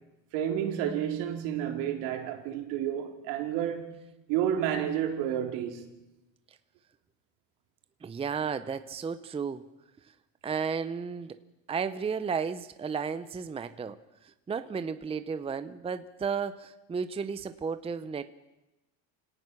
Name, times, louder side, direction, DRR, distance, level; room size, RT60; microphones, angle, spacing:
voice 1, 0.3-4.0 4.3-5.9, right 10 dB, 75° right, 3.7 m, -30 dB
voice 2, 8.0-9.6 10.4-11.4 11.7-14.0 14.2-18.3, right 6 dB, 15° right, 0.7 m, -33 dB
28.0 x 18.0 x 6.1 m
cardioid pair, 135°, 41 cm